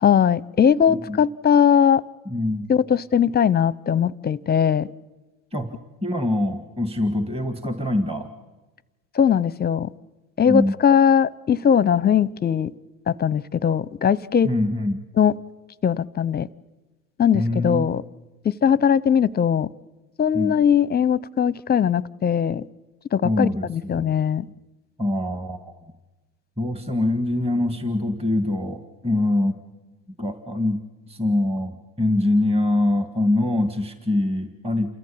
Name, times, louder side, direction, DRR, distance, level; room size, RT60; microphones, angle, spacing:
voice 1, 0.0-2.0 2.7-4.9 9.1-9.9 10.4-12.7 13.1-14.5 15.2-15.3 15.8-16.5 17.2-18.0 18.4-19.7 20.2-22.6 23.1-24.5, left 8 dB, 25° left, 21 dB, 0.7 m, -20 dB
voice 2, 0.9-1.2 2.3-2.7 5.5-5.8 6.0-8.3 10.5-10.7 14.4-15.0 17.3-17.9 20.3-20.5 23.2-24.2 25.0-25.7 26.6-29.5 30.2-30.8 31.1-34.9, left 1 dB, 15° right, 8 dB, 1.9 m, -24 dB
28.5 x 14.0 x 8.7 m, 1.2 s
supercardioid pair, 85°, 43 cm